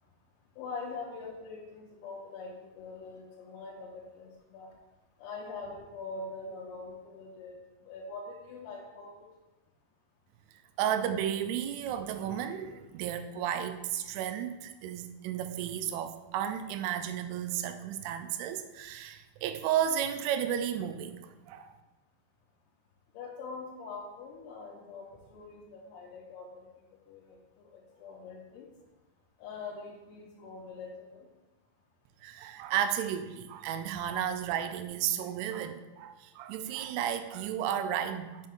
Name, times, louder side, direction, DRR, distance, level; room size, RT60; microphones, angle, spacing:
voice 1, 0.6-4.7 5.2-7.6 7.9-9.3 23.2-26.7 27.1-27.2 27.7-28.7 29.4-31.2, left 4 dB, 90° left, -6 dB, 3.7 m, -43 dB
voice 2, 10.8-21.8 32.2-38.5, right 9 dB, 85° right, 9 dB, 2.9 m, -33 dB
7.6 x 6.5 x 3.7 m, 1.1 s
omnidirectional pair, 5.8 m